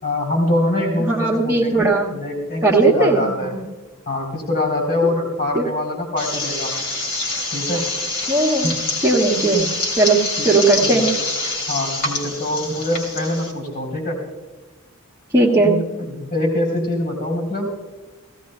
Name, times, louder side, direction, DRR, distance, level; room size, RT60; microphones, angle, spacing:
voice 1, 0.0-3.5 4.1-6.7 7.5-7.8 8.6-8.8 10.4-10.5 10.8-11.0 11.7-14.2 15.6-17.8, left 1 dB, 45° left, 1 dB, 3.4 m, -24 dB
voice 2, 1.0-2.1 2.6-3.6 5.0-5.1 5.5-5.6 8.3-8.7 9.0-9.7 10.0-10.2 10.4-11.1 15.3-15.7, right 2 dB, 15° right, -7 dB, 1.4 m, -17 dB
sound 1, 6.2-13.5, left 2 dB, 65° left, 3.0 m, -26 dB
17.5 x 16.0 x 2.2 m, 1.3 s
head